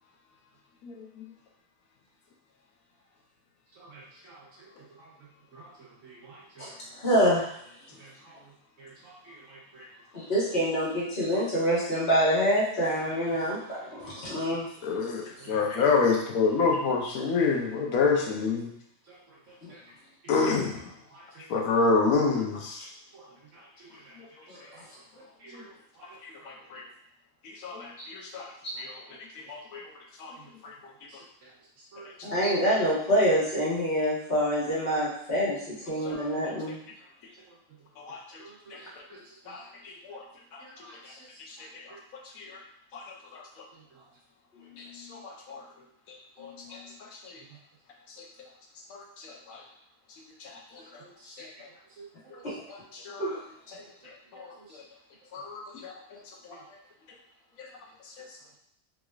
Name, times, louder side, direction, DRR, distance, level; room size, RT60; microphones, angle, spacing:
voice 1, 3.8-4.4 5.5-5.6 6.0-6.6 8.0-8.3 8.8-9.9 15.5-15.6 19.1-19.2 21.1-21.4 23.1-23.3 23.9-24.0 25.4-25.7 26.0-26.1 31.9-32.1 36.1-36.3 38.4-39.2 39.5-39.7 41.1-41.2 51.2-51.5 52.2-52.3, right 3 dB, 65° right, -4 dB, 1.2 m, -50 dB
voice 2, 6.6-7.5 10.1-14.7 19.6-19.7 24.5-24.6 32.2-36.8 44.8-45.2 46.5-46.9 52.4-52.5 53.2-53.4, equal, 45° left, -8 dB, 1.5 m, -26 dB
voice 3, 14.8-18.7 20.3-20.7 21.5-22.8 26.7-26.8 27.6-27.9 28.3-28.5 29.5-29.8 30.2-30.3 38.1-38.2 39.5-39.6 40.1-40.2 45.5-45.6 46.4-46.5 53.1-53.2 55.3-55.6, left 4 dB, 80° left, 0 dB, 1.1 m, -25 dB
3.6 x 3.0 x 2.4 m, 0.68 s
omnidirectional pair, 1.5 m